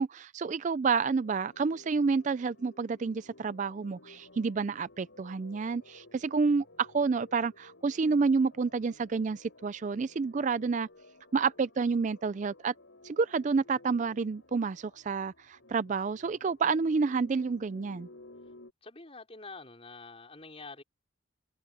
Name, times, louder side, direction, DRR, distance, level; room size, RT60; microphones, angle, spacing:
voice 1, 0.0-10.9 11.3-12.7 13.0-18.1, right 4 dB, 40° right, 0.3 m, -29 dB
sound 1, 1.2-18.7, left 2 dB, 70° left, 5.6 m, -56 dB
voice 2, 18.8-20.8, left 3 dB, 30° left, 4.7 m, -46 dB
head